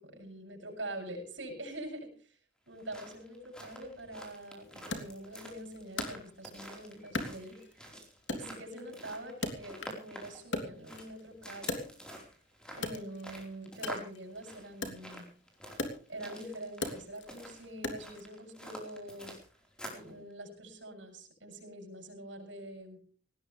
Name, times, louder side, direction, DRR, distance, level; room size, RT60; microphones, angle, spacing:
voice 1, 0.2-2.4 2.7-7.9 8.3-11.9 12.8-15.3 16.1-19.4 19.9-23.0, right 1 dB, 80° right, 2 dB, 7.8 m, -44 dB
sound 1, 2.7-20.1, equal, 5° left, 4.5 m, -49 dB
Wood, 4.9-6.7 7.1-7.9 8.3-10.1 10.4-12.3 12.7-18.3, left 2 dB, 75° left, 3.1 m, -40 dB
19.0 x 18.5 x 3.4 m, 0.39 s
head